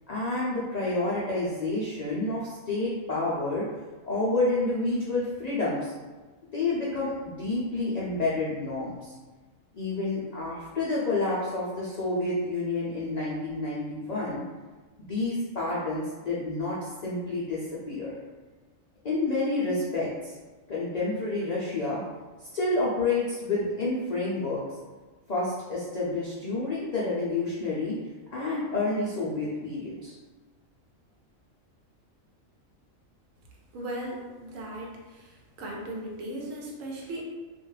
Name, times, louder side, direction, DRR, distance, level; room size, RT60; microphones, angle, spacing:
voice 1, 0.1-3.7 4.0-5.9 6.5-9.1 9.7-14.4 15.0-17.6 17.9-18.2 19.0-20.1 20.7-22.0 22.5-24.6 25.3-28.0 28.3-30.1, left 2 dB, 90° left, -7 dB, 0.3 m, -29 dB
voice 2, 33.7-35.3 35.6-37.2, right 1 dB, 75° right, -1 dB, 1.0 m, -37 dB
2.4 x 2.2 x 3.1 m, 1.3 s
omnidirectional pair, 1.4 m